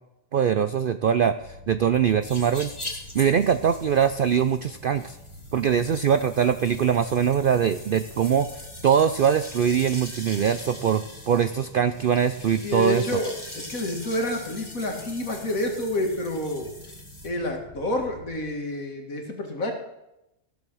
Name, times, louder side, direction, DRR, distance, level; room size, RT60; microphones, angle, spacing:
voice 1, 0.3-2.7 3.1-5.2 5.5-8.5 8.8-13.0, right 8 dB, 65° right, 11 dB, 0.5 m, -22 dB
sound 1, 1.4-18.4, left 1 dB, 45° right, 3.4 m, -48 dB
sound 2, 2.2-17.3, left 1 dB, 20° left, 2.6 m, -42 dB
voice 2, 12.6-16.7 17.2-19.7, left 1 dB, 75° left, 2 dB, 2.5 m, -28 dB
15.5 x 7.4 x 6.3 m, 0.90 s
omnidirectional pair, 1.5 m